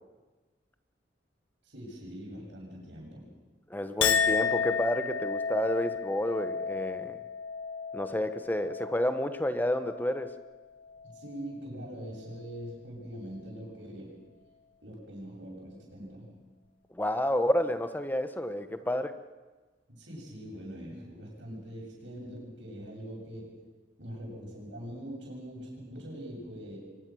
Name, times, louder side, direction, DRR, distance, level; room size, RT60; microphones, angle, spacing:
voice 1, 1.6-3.3 11.0-14.2 14.8-16.3 19.9-23.5 24.0-26.8, equal, 80° right, -3 dB, 8.0 m, -43 dB
voice 2, 3.7-7.2 7.9-10.3 16.9-19.1, left 1 dB, 10° left, 9 dB, 1.0 m, -30 dB
Chink clink, 4.0-10.6 10.9-11.5, left 6 dB, 85° left, 1.5 m, -32 dB
23.5 x 21.5 x 6.3 m, 1.3 s
head